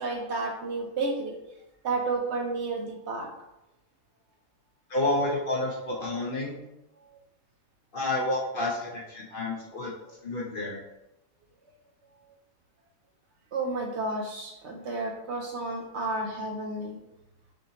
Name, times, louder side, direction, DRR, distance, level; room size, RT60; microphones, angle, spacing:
voice 1, 0.0-1.4 1.8-3.3 13.5-17.0, right 3 dB, 65° right, 1 dB, 0.8 m, -31 dB
voice 2, 4.9-6.6 7.9-9.9 10.2-10.8, left 2 dB, 50° left, -3 dB, 0.7 m, -29 dB
6.1 x 2.6 x 2.9 m, 0.91 s
omnidirectional pair, 1.5 m